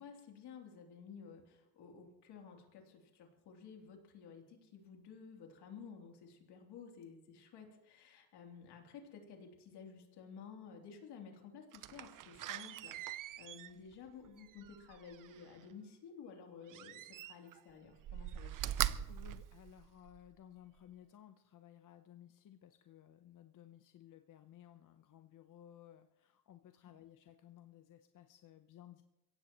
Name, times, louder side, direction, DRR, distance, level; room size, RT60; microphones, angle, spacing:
voice 1, 0.0-18.9, left 6 dB, 80° left, 1 dB, 3.2 m, -54 dB
Slam, 11.7-15.6 16.7-17.6 18.0-20.3 20.8-20.9, right 12 dB, 55° right, 0.7 m, -42 dB
voice 2, 19.1-29.0, left 11 dB, 50° left, 8 dB, 0.9 m, -58 dB
23.0 x 16.5 x 3.1 m, 0.98 s
cardioid pair, 100°, 40 cm